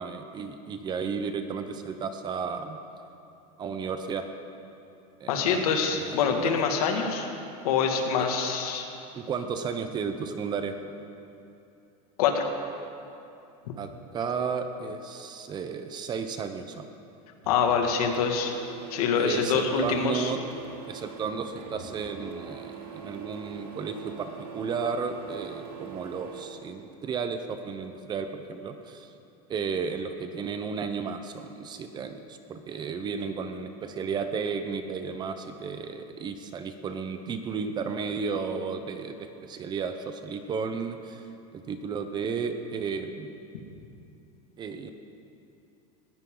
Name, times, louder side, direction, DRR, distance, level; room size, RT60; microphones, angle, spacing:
voice 1, 0.0-2.8 3.6-4.3 5.2-5.6 5.9-6.6 9.1-10.7 13.8-16.9 19.1-20.4 20.9-29.1 29.5-41.2 41.5-43.4 44.6-44.9, right 5 dB, 20° right, 8 dB, 0.8 m, -33 dB
voice 2, 5.3-7.3 7.6-8.9 12.2-12.5 17.5-18.5 18.9-20.3, left 6 dB, 75° left, 3 dB, 2.3 m, -25 dB
Printer, 17.4-26.4, right 7 dB, 90° right, 3.0 m, -43 dB
19.5 x 16.5 x 3.9 m, 2.7 s
supercardioid pair, 155°, 19 cm